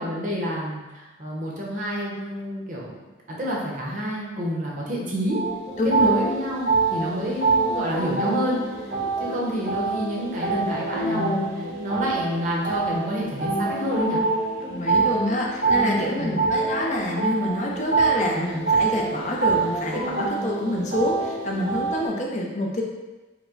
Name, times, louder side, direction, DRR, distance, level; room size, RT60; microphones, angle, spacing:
voice 1, 0.0-3.0 3.3-5.4 5.8-8.8 9.2-14.2 16.2-16.5, equal, 45° right, -4 dB, 0.8 m, -28 dB
sound 1, 5.3-22.1, right 4 dB, 75° right, 1.1 m, -25 dB
voice 2, 5.8-6.1 9.0-9.4 14.6-22.8, left 1 dB, 40° left, -1 dB, 0.5 m, -27 dB
4.6 x 2.2 x 3.8 m, 1.2 s
head